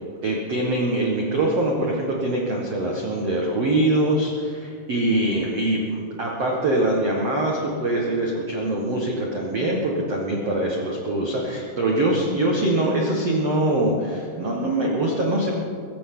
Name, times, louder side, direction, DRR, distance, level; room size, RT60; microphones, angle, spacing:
voice 1, 0.2-15.6, right 1 dB, 80° right, -2 dB, 1.4 m, -23 dB
23.5 x 15.5 x 3.9 m, 2.3 s
omnidirectional pair, 5.7 m